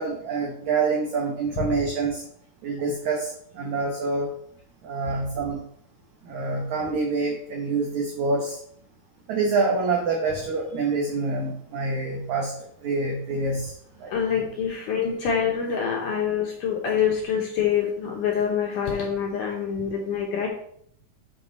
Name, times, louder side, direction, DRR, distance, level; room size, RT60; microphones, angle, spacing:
voice 1, 0.0-2.2 2.6-4.3 4.8-5.6 6.2-8.6 9.3-12.5 12.8-14.1, right 3 dB, 65° right, -1 dB, 1.9 m, -26 dB
voice 2, 14.1-20.5, left 7 dB, 70° left, -1 dB, 2.0 m, -26 dB
8.7 x 4.0 x 4.1 m, 0.66 s
omnidirectional pair, 4.4 m